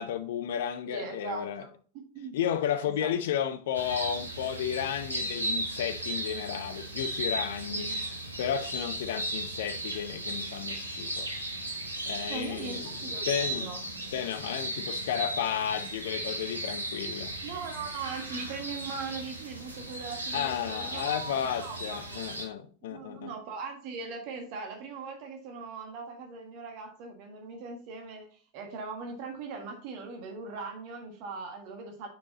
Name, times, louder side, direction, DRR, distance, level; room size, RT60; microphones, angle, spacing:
voice 1, 0.0-1.6 2.3-11.3 12.1-12.9 13.3-13.7 14.1-17.3 20.3-23.3, left 9 dB, 55° left, 0.6 m, -33 dB
voice 2, 0.9-1.7 1.9-2.4 2.8-3.1 7.7-8.0 12.3-13.8 17.4-22.3 22.9-32.1, right 4 dB, 45° right, 1.4 m, -40 dB
sound 1, 3.7-22.5, right 1 dB, 80° right, 1.3 m, -36 dB
7.0 x 4.8 x 4.0 m
figure-of-eight pair, 90°, 0 cm